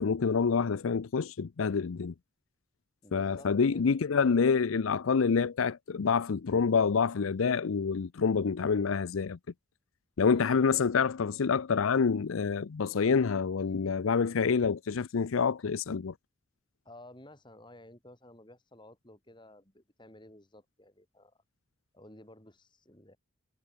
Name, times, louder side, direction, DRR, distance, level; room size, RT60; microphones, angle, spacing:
voice 1, 0.0-2.1 3.1-9.4 10.2-16.1, left 5 dB, 90° left, 0.5 m, -27 dB
voice 2, 3.0-4.4 10.2-10.5 16.9-21.4 21.9-23.2, left 1 dB, 25° left, 5.3 m, -54 dB
head